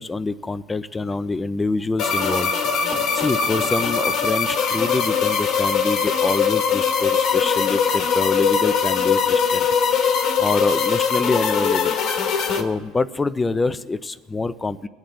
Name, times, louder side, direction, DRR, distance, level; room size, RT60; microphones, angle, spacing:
voice 1, 0.0-2.5 3.1-9.7 10.4-12.0 12.6-14.9, left 3 dB, 15° left, 13 dB, 0.5 m, -25 dB
sound 1, 0.9-1.5 2.3-2.4 2.6-4.4 4.9-5.0 5.2-5.3 5.6-5.8, equal, 10° right, 2.1 m, -42 dB
sound 2, 2.0-12.6, left 6 dB, 55° left, 1.3 m, -21 dB
22.0 x 8.4 x 3.8 m, 1.2 s
supercardioid pair, 115°, 0 cm